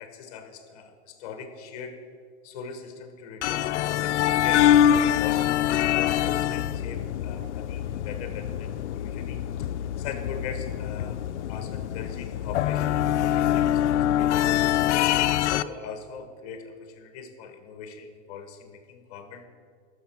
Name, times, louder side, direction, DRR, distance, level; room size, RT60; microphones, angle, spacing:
voice 1, 0.0-2.0 2.4-9.7 10.0-11.2 11.5-19.5, left 6 dB, 35° left, 7 dB, 1.0 m, -41 dB
sound 1, 3.4-15.6, left 11 dB, 80° left, 0.5 m, -24 dB
14.0 x 6.5 x 5.9 m, 2.2 s
supercardioid pair, 175°, 34 cm